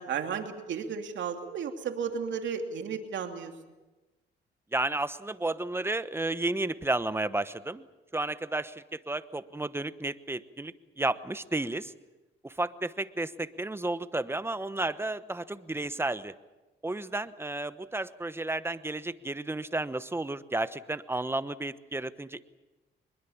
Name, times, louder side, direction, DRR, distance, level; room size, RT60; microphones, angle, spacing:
voice 1, 0.0-3.5, right 7 dB, 70° right, 5 dB, 2.9 m, -34 dB
voice 2, 4.7-7.9 8.1-11.9 12.4-16.3 16.8-22.5, right 2 dB, 10° right, 13 dB, 1.0 m, -32 dB
23.5 x 21.5 x 7.3 m, 1.1 s
cardioid pair, 90°, 20 cm